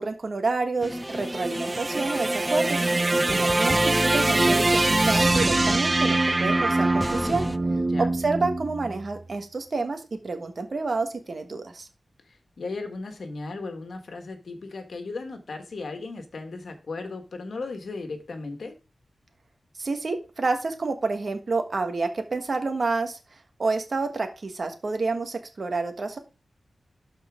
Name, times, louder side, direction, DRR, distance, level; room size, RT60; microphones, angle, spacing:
voice 1, 0.0-7.4 8.1-11.9 19.8-23.2 23.6-26.2, right 3 dB, 50° right, 6 dB, 1.5 m, -29 dB
sound 1, 0.8-7.6, equal, 5° left, 0.3 m, -32 dB
sound 2, 0.9-9.2, right 2 dB, 30° right, 0.6 m, -24 dB
voice 2, 3.1-3.5 7.9-8.1 12.2-18.7, left 3 dB, 70° left, 6 dB, 1.6 m, -36 dB
12.0 x 4.5 x 3.7 m, 0.32 s
wide cardioid pair, 125°, 0 cm